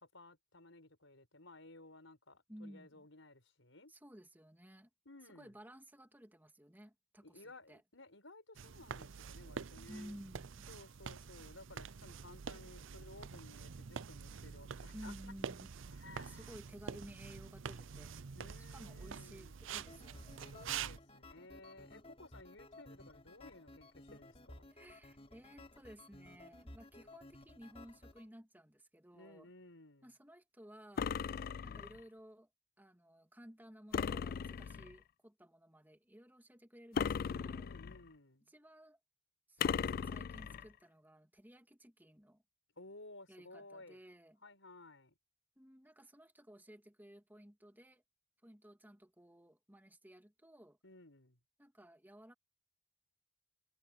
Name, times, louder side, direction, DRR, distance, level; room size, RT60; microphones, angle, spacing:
voice 1, 0.0-3.9 5.0-5.5 7.2-10.2 10.7-15.3 15.9-16.5 18.3-19.6 20.5-24.7 29.1-30.1 37.6-38.5 42.7-44.0 44.4-45.1 50.8-51.4, left 2 dB, 65° left, 6.8 m, -57 dB
voice 2, 2.5-3.1 3.9-4.9 5.3-7.8 9.9-10.7 14.9-18.1 18.7-20.5 24.7-29.5 30.0-31.2 31.6-32.5 32.8-37.7 38.5-39.0 39.5-42.4 43.3-44.4 45.6-48.0 48.4-50.8 51.6-52.3, equal, 10° right, 2.8 m, -56 dB
sound 1, 8.5-21.0, right 6 dB, 60° right, 0.6 m, -47 dB
sound 2, 19.6-28.3, left 1 dB, 30° left, 4.0 m, -56 dB
sound 3, 31.0-32.0 33.9-35.0 36.9-38.1 39.6-40.7, left 6 dB, 45° left, 0.3 m, -37 dB
head